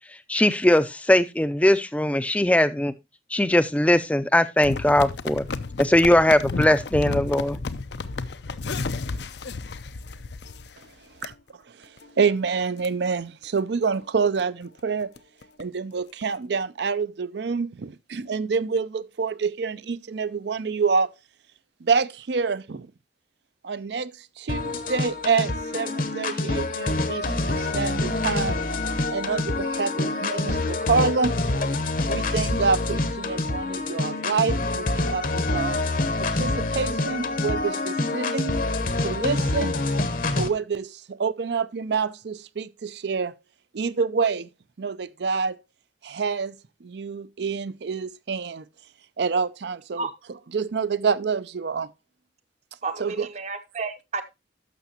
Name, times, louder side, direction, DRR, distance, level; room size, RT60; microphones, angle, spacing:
voice 1, 0.3-2.9 3.3-5.5 5.8-7.6, left 1 dB, 5° left, 0.5 m, -20 dB
sound 1, 4.6-10.9 11.2-11.3 11.8-12.1 12.5-12.6 12.8-12.9 13.4-13.6 14.0-14.1 14.4-14.5 14.8-15.6 16.2-16.3, left 3 dB, 65° left, 0.6 m, -32 dB
voice 2, 12.2-15.1 15.6-21.1 21.8-22.9 23.6-28.6 29.1-31.4 32.1-35.8 36.2-38.6 39.0-39.7 40.4-43.3 43.7-44.5 44.8-45.6 46.0-48.6 49.2-51.9 53.0-53.3, right 5 dB, 65° right, 0.5 m, -27 dB
sound 2, 24.5-40.5, left 2 dB, 45° left, 0.9 m, -26 dB
voice 3, 52.8-54.2, right 4 dB, 40° right, 0.8 m, -31 dB
11.5 x 6.8 x 2.9 m
head